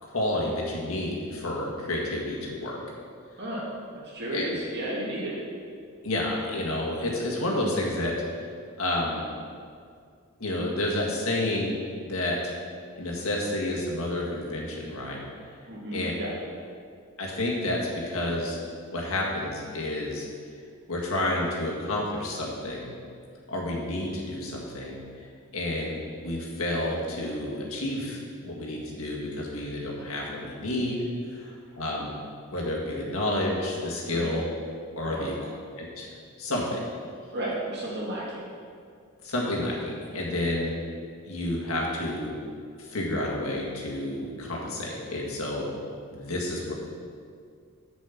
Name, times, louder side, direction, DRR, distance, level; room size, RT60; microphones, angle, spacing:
voice 1, 0.0-2.8 4.3-4.5 6.0-8.1 8.8-9.2 10.4-12.5 13.0-15.2 15.9-16.1 17.2-18.6 18.9-20.3 20.9-22.9 23.5-25.0 25.5-32.1 32.5-34.4 35.0-35.4 35.8-36.1 36.4-36.9 39.2-40.7 41.2-42.4 42.8-45.7 46.1-46.7, left 1 dB, 70° left, -3 dB, 1.8 m, -30 dB
voice 2, 3.9-5.4 15.7-16.3 34.0-34.3 35.0-35.3 37.3-38.4, right 1 dB, 50° right, -4 dB, 2.0 m, -33 dB
7.3 x 5.3 x 7.1 m, 2.2 s
head